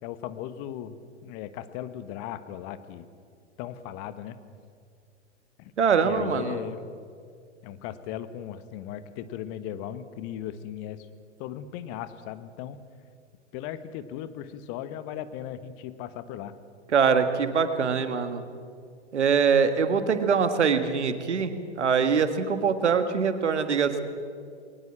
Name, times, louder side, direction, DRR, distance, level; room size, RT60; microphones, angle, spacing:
voice 1, 0.0-3.1 3.6-4.4 5.6-5.7 6.0-6.8 7.6-11.1 11.4-12.8 13.5-16.5, left 10 dB, 40° left, 12 dB, 1.4 m, -37 dB
voice 2, 5.8-6.6 16.9-18.4 19.1-24.0, right 6 dB, 75° right, 9 dB, 1.9 m, -23 dB
21.5 x 19.5 x 7.5 m, 2.3 s
figure-of-eight pair, 100°, 35 cm